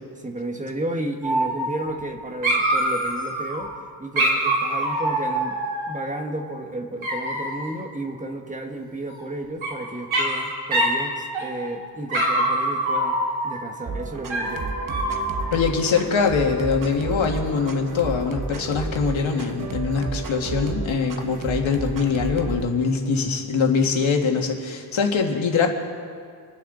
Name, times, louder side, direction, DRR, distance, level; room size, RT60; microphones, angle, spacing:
voice 1, 0.2-3.7 4.0-5.6 5.8-14.8, right 2 dB, 15° right, 3 dB, 1.4 m, -32 dB
Dog, 1.2-2.1 2.4-3.6 4.2-6.2 7.0-7.7 9.1-9.7 10.1-10.4 10.7-11.0 11.3-11.8 12.1-13.6 14.3-15.5, right 1 dB, 80° right, 3.6 m, -24 dB
sound 1, 13.9-22.6, right 4 dB, 45° right, 1.0 m, -32 dB
voice 2, 15.5-25.7, left 5 dB, 80° left, 2 dB, 1.9 m, -23 dB
27.0 x 10.0 x 3.9 m, 2.2 s
wide cardioid pair, 145°, 47 cm